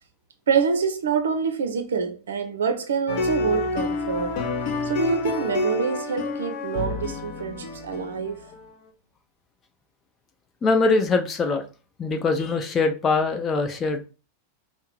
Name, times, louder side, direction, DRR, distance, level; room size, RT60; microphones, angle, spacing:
voice 1, 0.5-4.4 4.8-8.4, right 6 dB, 65° right, 0.5 m, -26 dB
sound 1, 3.1-8.7, left 2 dB, 45° left, 1.0 m, -28 dB
voice 2, 10.6-11.6 12.0-14.1, left 3 dB, 25° left, 0.7 m, -22 dB
5.6 x 2.0 x 4.5 m
figure-of-eight pair, 90°, 0 cm